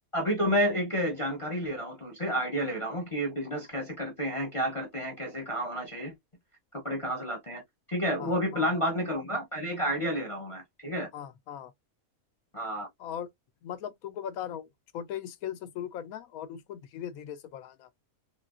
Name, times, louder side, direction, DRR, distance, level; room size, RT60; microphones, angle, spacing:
voice 1, 0.1-6.1 6.7-7.6 7.9-11.1 12.5-12.9, equal, 30° left, 0.7 m, -30 dB
voice 2, 8.2-8.7 11.1-11.7 13.0-13.3 13.6-14.7 14.9-17.9, left 9 dB, 90° left, 1.1 m, -39 dB
3.9 x 2.2 x 2.4 m
omnidirectional pair, 1.4 m